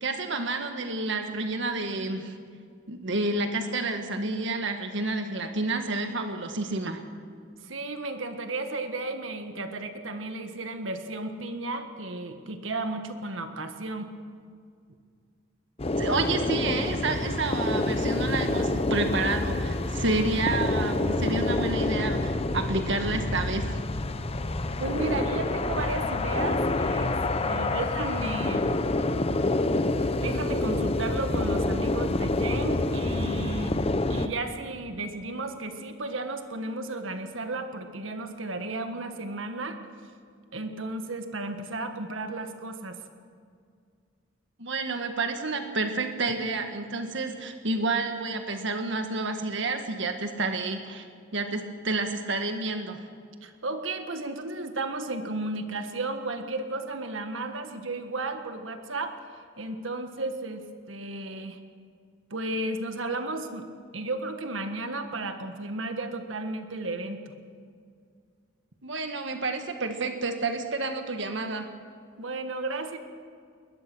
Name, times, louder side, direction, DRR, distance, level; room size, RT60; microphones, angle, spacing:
voice 1, 0.0-2.4 2.9-7.0 16.0-23.8 44.6-51.0 51.3-53.0 68.8-71.7, right 3 dB, 65° right, 6 dB, 1.7 m, -29 dB
voice 2, 7.6-14.1 24.8-27.2 27.4-29.0 30.2-33.7 34.1-39.8 40.5-43.0 53.4-59.2 59.6-60.6 60.9-61.6 62.3-63.7 63.9-67.2 72.2-73.0, right 2 dB, 85° right, 6 dB, 1.6 m, -33 dB
sound 1, 15.8-34.3, left 2 dB, 30° left, 0.8 m, -27 dB
21.0 x 20.5 x 6.2 m, 2.2 s
head